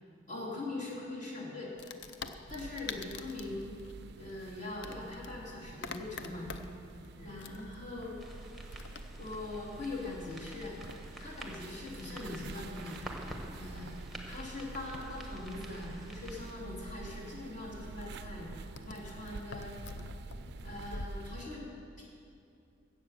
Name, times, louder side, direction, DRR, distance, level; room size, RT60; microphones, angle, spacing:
voice 1, 0.3-1.7 2.5-3.8 4.2-6.5 7.2-8.2 9.2-10.8 11.2-13.0 13.6-14.0 14.3-18.5 18.8-19.8 20.6-21.7 22.0-22.1, left 2 dB, 40° left, -5 dB, 3.4 m, -42 dB
Wood, 1.8-21.1, left 4 dB, 60° left, 0.6 m, -49 dB
sound 1, 2.5-21.5, right 4 dB, 55° right, 0.3 m, -49 dB
sound 2, 8.2-16.5, right 1 dB, ahead, 1.3 m, -47 dB
16.0 x 7.6 x 6.6 m, 2.6 s
head